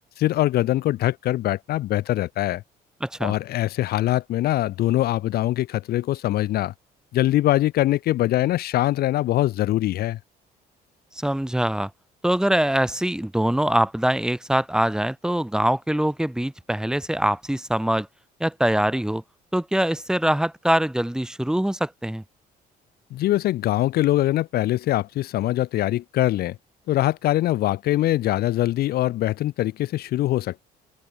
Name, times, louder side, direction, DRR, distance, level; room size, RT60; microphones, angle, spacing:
voice 1, 0.2-2.6 3.2-6.7 7.1-10.2 23.1-26.6 26.9-30.6, left 15 dB, 65° left, 0.8 m, -23 dB
voice 2, 3.0-3.3 11.2-11.9 12.2-18.1 18.4-19.2 19.5-22.2, right 1 dB, 5° right, 2.2 m, -23 dB
open air
cardioid pair, 110°, 17 cm